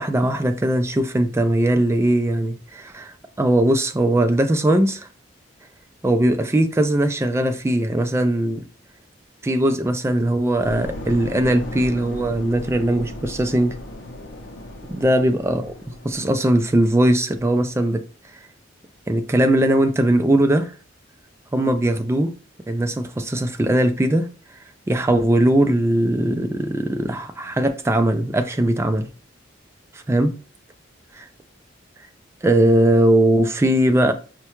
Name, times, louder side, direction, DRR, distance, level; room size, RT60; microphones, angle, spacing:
voice 1, 0.0-5.1 6.0-8.6 9.4-13.8 14.9-15.7 16.0-18.0 19.1-20.7 21.5-22.3 22.7-24.3 24.9-29.1 29.9-30.4 31.1-31.3 32.4-34.1, right 1 dB, 15° right, 0.3 m, -19 dB
sound 1, 10.6-16.9, left 1 dB, 75° left, 0.6 m, -36 dB
4.6 x 2.2 x 2.9 m
head